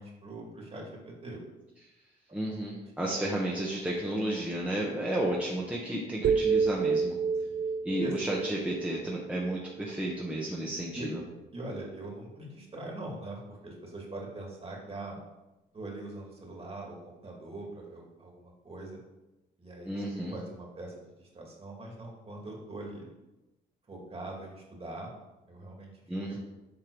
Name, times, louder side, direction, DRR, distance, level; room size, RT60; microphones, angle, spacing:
voice 1, 0.0-1.4 2.8-2.9 7.5-7.6 8.0-8.1 10.9-11.1 11.5-15.2 15.7-19.0 19.6-20.0 20.3-23.1 23.9-25.1 25.5-26.4, right 2 dB, 30° right, -2 dB, 2.4 m, -42 dB
voice 2, 2.3-7.2 7.8-11.2 19.8-20.3 26.1-26.4, right 1 dB, 5° right, -4 dB, 1.1 m, -32 dB
sound 1, 6.2-10.3, right 5 dB, 45° right, 0.5 m, -30 dB
7.7 x 3.6 x 4.8 m, 1.0 s
cardioid pair, 90°, 20 cm